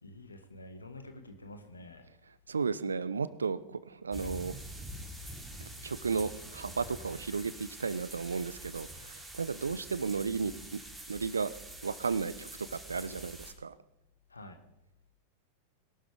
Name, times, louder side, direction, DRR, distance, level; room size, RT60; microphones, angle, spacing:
voice 1, 0.0-2.1 14.3-14.6, left 1 dB, 80° left, 7 dB, 1.8 m, -48 dB
voice 2, 2.5-4.6 5.6-10.8 11.1-11.5 11.8-13.8, right 5 dB, 75° right, 17 dB, 0.7 m, -34 dB
sound 1, 4.1-13.5, right 1 dB, 5° right, 3.1 m, -46 dB
22.0 x 12.0 x 3.6 m, 0.85 s
figure-of-eight pair, 90°, 0 cm